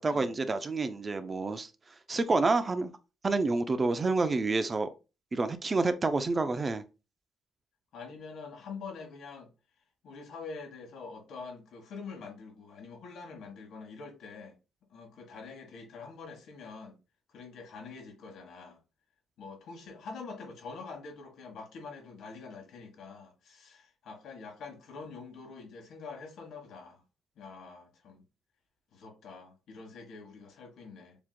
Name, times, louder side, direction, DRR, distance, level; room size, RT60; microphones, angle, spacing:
voice 1, 0.0-1.7 2.1-2.9 3.2-4.9 5.3-6.8, right 3 dB, 30° right, 0.6 m, -28 dB
voice 2, 7.9-9.5 10.0-14.5 14.9-17.0 17.3-18.8 19.4-27.0 27.4-28.2 28.9-31.2, left 4 dB, 75° left, 1.5 m, -45 dB
7.0 x 3.0 x 2.3 m
cardioid pair, 90°, 0 cm